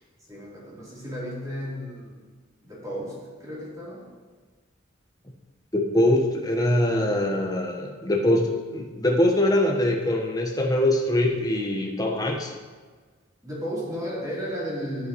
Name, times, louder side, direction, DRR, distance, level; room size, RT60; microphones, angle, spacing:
voice 1, 0.3-2.2 2.6-4.1 13.4-15.1, equal, 20° right, -7 dB, 3.5 m, -34 dB
voice 2, 5.7-12.5, left 1 dB, 20° left, 0 dB, 1.2 m, -23 dB
11.5 x 10.0 x 3.1 m, 1.4 s
head